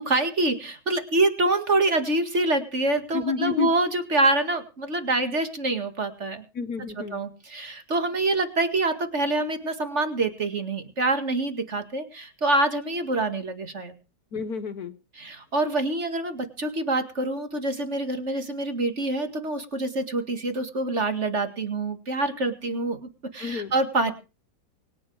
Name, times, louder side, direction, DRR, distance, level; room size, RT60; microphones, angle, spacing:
voice 1, 0.0-6.4 7.1-13.9 15.2-24.1, right 2 dB, 40° right, 8 dB, 2.3 m, -26 dB
voice 2, 3.1-3.7 6.5-7.2 14.3-15.0 23.4-23.7, left 5 dB, 60° left, 12 dB, 1.7 m, -29 dB
24.0 x 10.0 x 4.8 m, 0.33 s
omnidirectional pair, 1.9 m